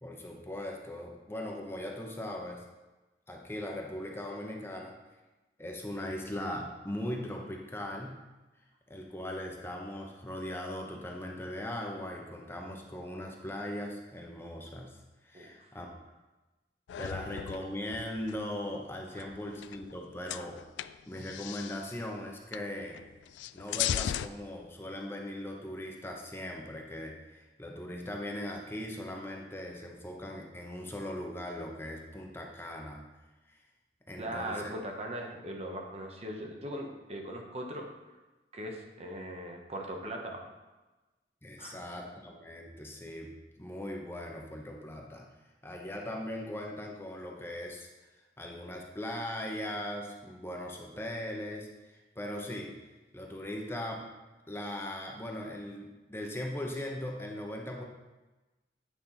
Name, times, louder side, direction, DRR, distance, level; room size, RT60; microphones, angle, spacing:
voice 1, 0.0-2.6 3.3-4.9 5.6-8.2 8.9-15.0 15.2-15.9 17.0-20.6 21.1-23.0 23.5-33.0 34.1-34.7 41.4-43.3 43.6-45.3 45.6-47.9 48.4-52.7 53.1-54.0 54.5-57.8, left 1 dB, 15° left, 0 dB, 0.9 m, -39 dB
voice 2, 15.3-15.7 19.1-19.3 34.2-37.9 38.5-40.4 41.6-41.8, right 1 dB, 35° right, 2 dB, 1.0 m, -39 dB
sound 1, 16.9-18.4 19.2-20.0 20.3-21.9 22.5-22.7 22.9-24.3, left 10 dB, 90° left, 0.3 m, -37 dB
9.1 x 4.2 x 5.7 m, 1.1 s
head